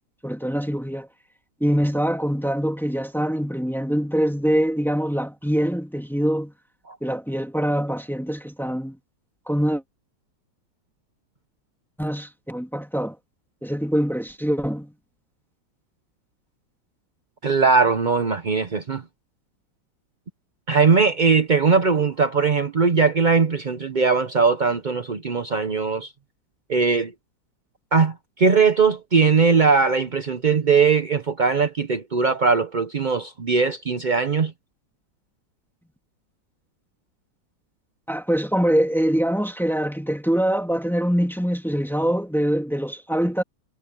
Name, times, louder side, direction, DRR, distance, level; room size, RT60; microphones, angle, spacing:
voice 1, 0.2-1.1 1.6-6.5 7.0-9.0 9.5-9.8 12.0-13.1 13.6-14.9 38.1-43.4, equal, ahead, 1.6 m, -24 dB
voice 2, 17.4-19.0 20.7-26.1 26.7-27.1 27.9-34.5, right 5 dB, 50° right, 0.5 m, -20 dB
omnidirectional pair, 2.1 m